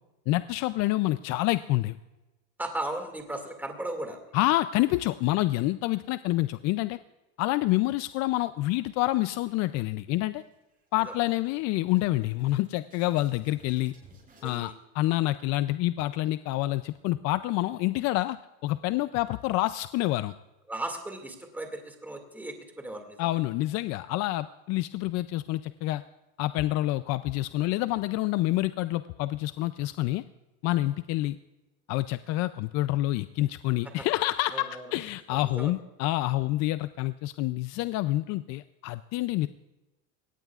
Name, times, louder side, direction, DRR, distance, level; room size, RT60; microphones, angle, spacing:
voice 1, 0.3-2.0 4.3-7.0 7.4-10.4 10.9-13.9 14.4-18.4 18.6-20.3 23.2-26.0 26.4-30.2 30.6-31.4 31.9-39.5, left 17 dB, 50° left, 13 dB, 0.4 m, -27 dB
voice 2, 2.6-4.2 14.4-14.8 20.7-23.2 34.0-34.1 34.5-35.0 35.3-35.7, right 1 dB, 5° right, 4 dB, 2.1 m, -36 dB
sound 1, 9.3-10.1 10.4-10.6 10.9-14.6, right 2 dB, 20° right, 6.3 m, -58 dB
22.5 x 18.5 x 2.4 m, 1.1 s
cardioid pair, 145°, 36 cm